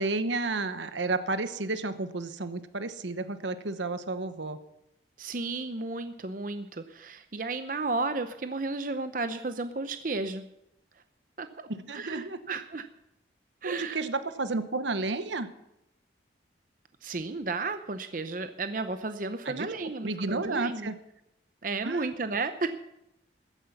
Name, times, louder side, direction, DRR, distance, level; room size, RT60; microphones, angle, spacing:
voice 1, 0.0-4.6 11.7-12.4 13.6-15.5 19.4-19.7 20.0-21.0 21.8-22.1, right 3 dB, 80° right, 11 dB, 1.0 m, -31 dB
voice 2, 5.2-10.4 11.4-12.8 13.6-14.0 17.0-20.9 21.6-22.8, right 3 dB, 45° right, 9 dB, 0.7 m, -33 dB
14.5 x 10.0 x 7.0 m, 0.85 s
head